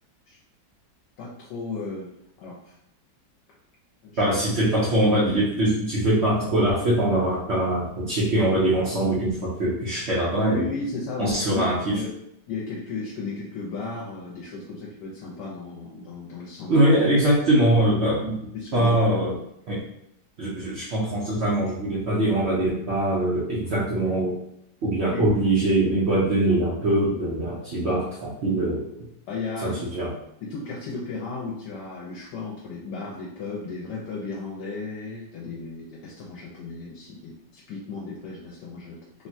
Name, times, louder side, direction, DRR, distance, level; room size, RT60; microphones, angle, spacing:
voice 1, 1.2-2.1 2.4-2.7 4.0-4.2 10.5-11.6 11.9-12.1 12.5-16.7 18.5-18.9 25.1-25.3 29.3-29.8 30.4-39.3, left 4 dB, 70° left, -4 dB, 1.2 m, -34 dB
voice 2, 4.2-10.7 11.2-12.0 16.7-19.3 19.7-19.8 20.4-24.4 24.8-29.1 29.6-30.1, right 1 dB, 80° right, -7 dB, 0.6 m, -23 dB
3.4 x 2.2 x 2.6 m, 0.76 s
omnidirectional pair, 2.0 m